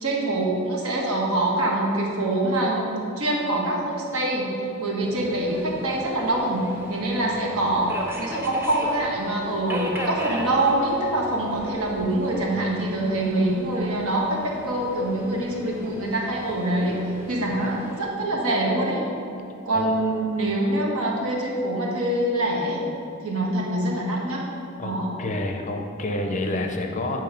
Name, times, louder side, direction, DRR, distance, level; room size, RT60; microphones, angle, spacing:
voice 1, 0.0-2.9 3.2-4.5 4.8-7.9 8.2-17.0 17.3-19.0 19.6-22.8 23.2-24.4 24.8-25.1, right 1 dB, 75° right, -2 dB, 1.2 m, -25 dB
Subway metro underground, 5.0-18.0, equal, 10° right, 0.6 m, -37 dB
voice 2, 24.8-27.2, left 2 dB, 35° left, 3 dB, 0.5 m, -29 dB
8.9 x 3.0 x 5.0 m, 2.6 s
head